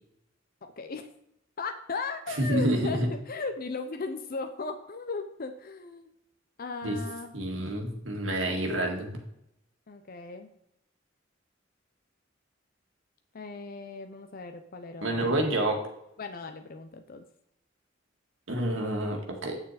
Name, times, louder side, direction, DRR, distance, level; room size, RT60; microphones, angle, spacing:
voice 1, 0.8-1.1 1.6-3.0 3.3-6.1 6.6-7.3 9.9-10.5 13.3-15.4 16.2-17.2, left 4 dB, 50° left, 6 dB, 0.7 m, -37 dB
voice 2, 2.4-3.1 6.8-7.0 7.3-9.2 15.0-15.8 18.5-19.6, right 1 dB, 80° right, 2 dB, 2.0 m, -28 dB
9.0 x 6.4 x 4.2 m, 0.80 s
head